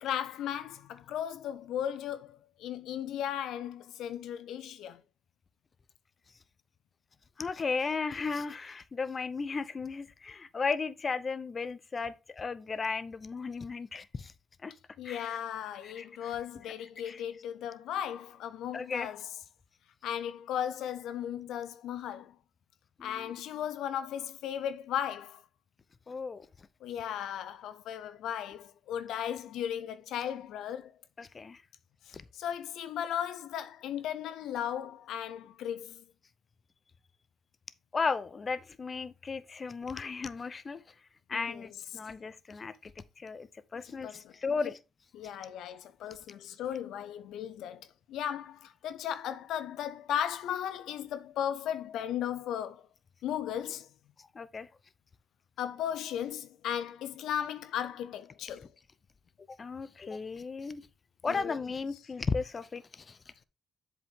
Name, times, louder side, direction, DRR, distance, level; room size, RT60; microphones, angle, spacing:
voice 1, 0.0-5.0 15.0-19.3 20.0-22.3 23.0-25.4 26.8-30.9 32.1-36.0 41.3-41.7 43.8-44.3 44.6-44.7 45.1-52.8 53.2-53.9 55.6-58.7 61.3-61.5, left 10 dB, 80° left, 0.5 m, -36 dB
voice 2, 7.4-14.3 14.6-14.7 15.0-15.4 15.8-16.3 17.0-17.2 18.7-19.1 23.0-23.3 26.1-26.5 31.2-31.6 32.1-32.2 37.9-40.8 41.3-42.9 43.2-44.7 54.2-54.7 59.5-60.8 61.2-63.2, left 4 dB, 35° left, 0.7 m, -35 dB
7.5 x 5.1 x 3.6 m
cardioid pair, 90°, 0 cm